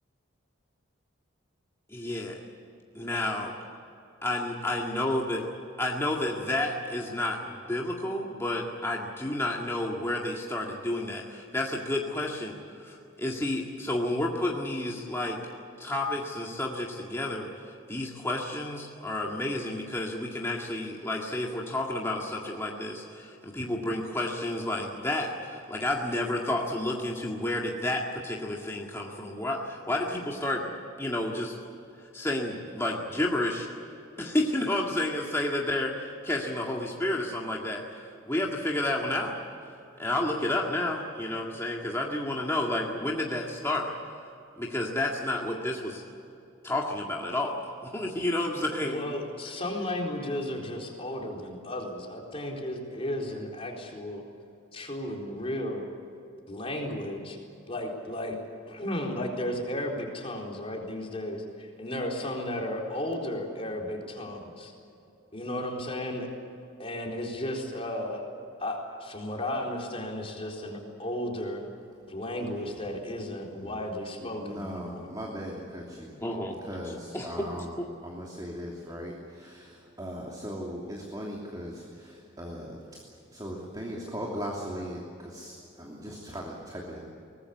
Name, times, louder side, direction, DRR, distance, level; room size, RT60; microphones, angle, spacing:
voice 1, 1.9-2.3 3.0-3.5 4.2-5.5 5.8-15.4 15.8-31.6 32.0-33.7 34.2-39.4 40.0-43.9 44.6-46.0 46.6-49.2 76.2-76.6 77.1-77.6, left 1 dB, 15° left, -2 dB, 2.0 m, -31 dB
voice 2, 48.8-54.2 54.7-55.8 56.5-57.4 57.7-58.4 58.7-64.7 65.3-66.3 66.8-68.2 68.6-71.6 72.1-75.1, left 1 dB, 30° left, 0 dB, 4.2 m, -34 dB
voice 3, 74.2-76.2 76.6-87.0, equal, 20° right, -2 dB, 2.9 m, -39 dB
24.0 x 19.5 x 8.5 m, 2.7 s
head